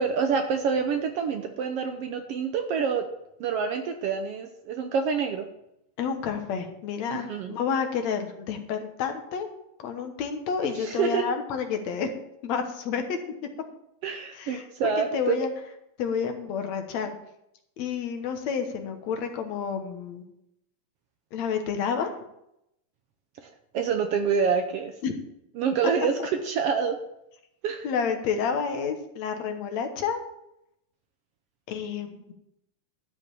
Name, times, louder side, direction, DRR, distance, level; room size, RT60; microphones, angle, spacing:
voice 1, 0.0-3.1 3.4-5.5 7.1-7.5 10.8-11.2 14.0-15.4 23.4-24.9 25.6-27.0 27.6-27.9, right 6 dB, 70° right, 6 dB, 1.5 m, -27 dB
voice 2, 6.0-9.5 9.8-12.1 12.4-13.2 14.3-15.5 16.0-17.2 17.8-20.2 21.3-22.1 25.0-25.1 27.8-30.2 31.7-32.2, left 6 dB, 70° left, 6 dB, 2.3 m, -30 dB
11.5 x 5.3 x 8.4 m, 0.81 s
omnidirectional pair, 3.3 m